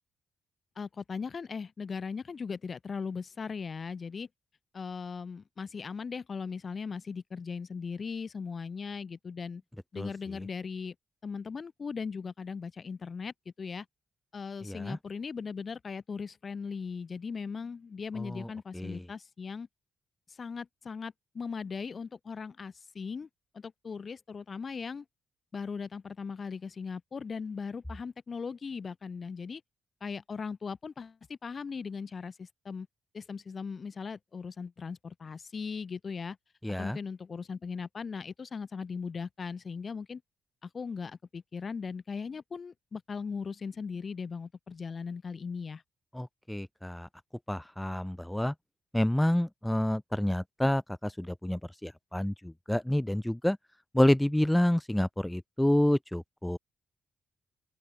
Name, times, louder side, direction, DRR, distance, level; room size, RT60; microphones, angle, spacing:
voice 1, 0.8-4.3 4.7-9.6 9.9-10.9 11.2-13.9 14.3-19.7 20.3-23.3 23.5-25.0 25.5-29.6 30.0-32.9 33.1-36.4 36.8-40.2 40.6-45.8, left 5 dB, 45° left, 1.0 m, -38 dB
voice 2, 14.6-15.0 18.2-18.5 18.7-19.0 36.6-37.0 46.1-47.1 47.5-48.5 48.9-53.6 53.9-56.6, left 1 dB, 5° left, 0.5 m, -28 dB
open air
cardioid pair, 70°, 0 cm